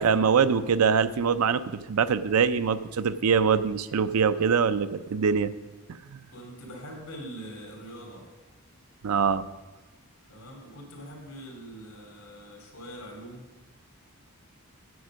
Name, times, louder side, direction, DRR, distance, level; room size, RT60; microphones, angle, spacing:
voice 1, 0.0-5.5 6.1-6.2 9.0-9.4, right 6 dB, 85° right, 13 dB, 0.5 m, -23 dB
voice 2, 6.3-8.2 10.3-13.5, right 1 dB, 85° left, 1 dB, 3.1 m, -43 dB
9.4 x 7.2 x 6.2 m, 1.2 s
head